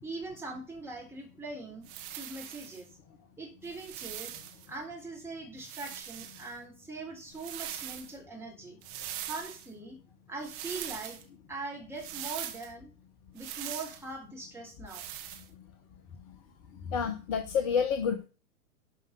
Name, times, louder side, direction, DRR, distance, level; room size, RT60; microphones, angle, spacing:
voice 1, 0.0-1.9 2.1-2.9 3.4-4.3 4.7-8.8 9.2-10.0 10.3-11.2 11.5-12.9 13.3-15.1, right 3 dB, 5° right, -1 dB, 3.6 m, -41 dB
sound 1, 1.8-2.8 3.6-4.7 5.6-6.5 7.3-8.1 8.8-9.7 10.4-11.2 12.0-12.7 13.4-14.0 14.9-15.5, right 12 dB, 35° right, 1.8 m, -41 dB
voice 2, 16.9-18.2, left 6 dB, 25° left, 9 dB, 0.9 m, -29 dB
12.0 x 5.6 x 6.5 m, 0.35 s
figure-of-eight pair, 110°, 45 cm